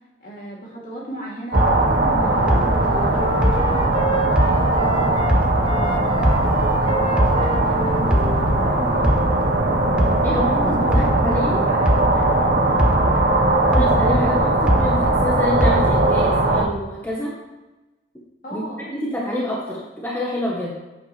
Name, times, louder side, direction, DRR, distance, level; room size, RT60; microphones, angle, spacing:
voice 1, 0.2-3.9 4.4-7.0 7.4-9.1 10.3-12.9 18.4-18.8, right 1 dB, 50° left, -4 dB, 2.9 m, -36 dB
sound 1, 1.5-4.9 5.3-7.8 8.1-12.4 12.8-15.3 15.6-16.3, equal, 5° right, 0.8 m, -22 dB
sound 2, 1.5-16.7, right 2 dB, 70° right, 1.3 m, -19 dB
Wind instrument woodwind instrument, 2.4-5.3 5.6-9.0, equal, 30° left, 0.8 m, -30 dB
voice 2, 10.8-11.6 13.7-17.3 18.5-20.7, left 1 dB, 10° left, -5 dB, 1.2 m, -27 dB
9.8 x 8.4 x 3.3 m, 1.1 s
head